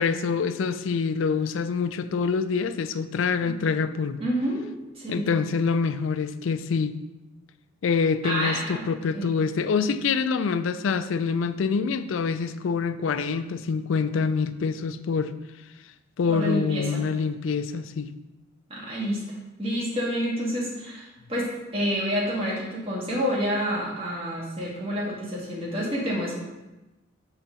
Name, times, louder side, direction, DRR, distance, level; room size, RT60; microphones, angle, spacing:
voice 1, 0.0-4.2 5.1-7.0 7.8-15.3 16.2-18.1, left 5 dB, 75° left, 12 dB, 0.4 m, -26 dB
voice 2, 4.2-4.6 5.0-5.4 8.2-8.9 9.1-9.3 16.3-17.0 18.7-19.2 19.6-26.3, equal, 30° right, -5 dB, 1.9 m, -28 dB
6.1 x 3.8 x 5.6 m, 1.0 s
head